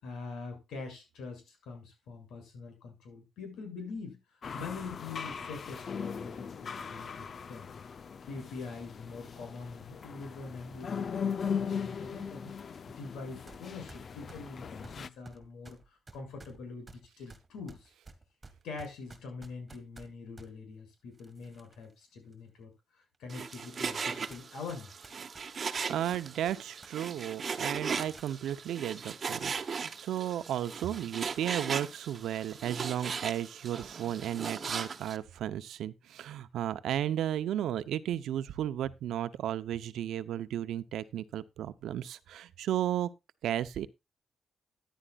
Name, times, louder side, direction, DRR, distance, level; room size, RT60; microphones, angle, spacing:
voice 1, 0.0-4.2 4.5-7.7 8.3-17.9 18.6-25.1, left 4 dB, 85° left, 7.2 m, -44 dB
sound 1, 4.4-15.1, left 6 dB, 45° left, 0.7 m, -39 dB
sound 2, 13.5-13.6 13.9-20.5 21.1-21.9 22.3-22.4 23.1-23.2 23.9-24.0 24.3-26.9 27.2-27.3 27.7-28.3, right 3 dB, 20° right, 1.9 m, -53 dB
Frying (food), 23.3-35.2, right 5 dB, 40° right, 1.2 m, -38 dB
voice 2, 25.9-43.1 43.4-43.9, right 11 dB, 85° right, 0.8 m, -34 dB
14.0 x 10.5 x 2.5 m
cardioid pair, 120°, 0 cm